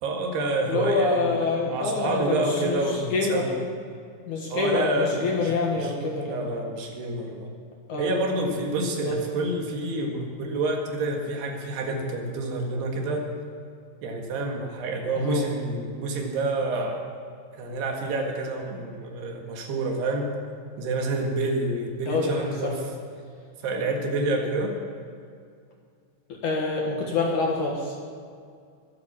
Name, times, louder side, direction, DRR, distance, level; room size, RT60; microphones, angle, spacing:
voice 1, 0.0-1.3 1.7-3.6 4.5-7.5 8.0-13.3 14.0-17.0 17.6-20.3 20.8-22.8 23.6-24.8, right 2 dB, 70° right, 2 dB, 3.8 m, -28 dB
voice 2, 0.7-2.8 3.1-3.4 4.3-6.5 7.9-8.1 9.0-9.2 15.2-15.4 22.1-22.8 26.3-28.0, left 3 dB, 55° left, -1 dB, 2.5 m, -26 dB
23.5 x 8.5 x 7.3 m, 2.3 s
omnidirectional pair, 5.0 m